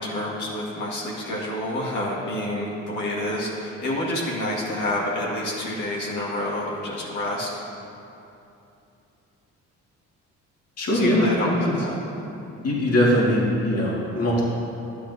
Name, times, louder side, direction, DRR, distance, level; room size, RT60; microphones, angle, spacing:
voice 1, 0.0-7.6 10.9-11.9, left 1 dB, 75° left, -5 dB, 2.1 m, -28 dB
voice 2, 10.8-11.8 12.6-14.4, left 1 dB, 55° left, -5 dB, 2.1 m, -21 dB
12.0 x 10.0 x 2.8 m, 2.8 s
cardioid pair, 90°, 30 cm